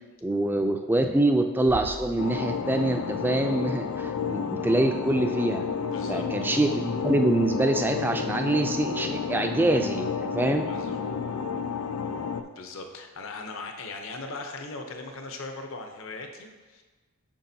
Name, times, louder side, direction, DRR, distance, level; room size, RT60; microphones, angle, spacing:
voice 1, 0.2-5.6 6.1-10.7, right 2 dB, 10° right, 5 dB, 0.3 m, -25 dB
Bass drum, 1.7-3.1, right 1 dB, 70° right, 1.0 m, -42 dB
sound 1, 2.2-12.4, left 6 dB, 90° left, 0.4 m, -31 dB
voice 2, 5.8-6.2 10.6-11.0 12.4-16.8, left 3 dB, 60° left, 4 dB, 0.8 m, -39 dB
8.5 x 5.9 x 2.7 m, 1.3 s
head